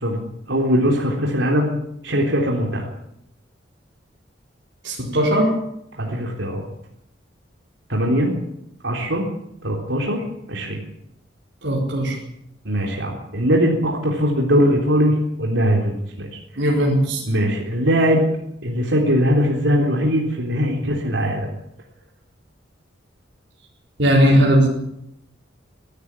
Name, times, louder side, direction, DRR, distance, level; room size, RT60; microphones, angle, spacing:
voice 1, 0.0-2.9 6.0-6.6 7.9-8.3 8.8-9.2 9.6-10.2 10.5-10.8 12.6-16.7 17.3-18.2 18.6-21.5, equal, 90° right, -1 dB, 3.8 m, -21 dB
voice 2, 4.8-5.5 11.6-12.2 16.6-17.2 24.0-24.7, equal, 70° right, -3 dB, 4.5 m, -17 dB
23.0 x 13.0 x 8.9 m, 0.78 s
head